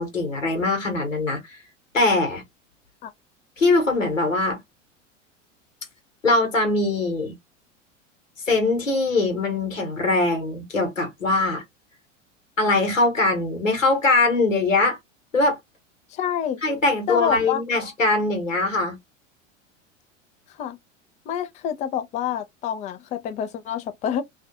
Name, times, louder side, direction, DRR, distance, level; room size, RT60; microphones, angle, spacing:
voice 1, 0.0-1.6 1.9-2.4 3.6-4.6 6.2-7.3 8.5-11.6 12.6-15.0 15.3-15.6 16.6-19.0, left 2 dB, 85° left, 1.0 m, -22 dB
voice 2, 16.1-16.6 17.1-17.6 20.5-20.8 21.3-24.2, left 9 dB, 20° left, 0.3 m, -27 dB
2.4 x 2.2 x 2.6 m
figure-of-eight pair, 80°, 38 cm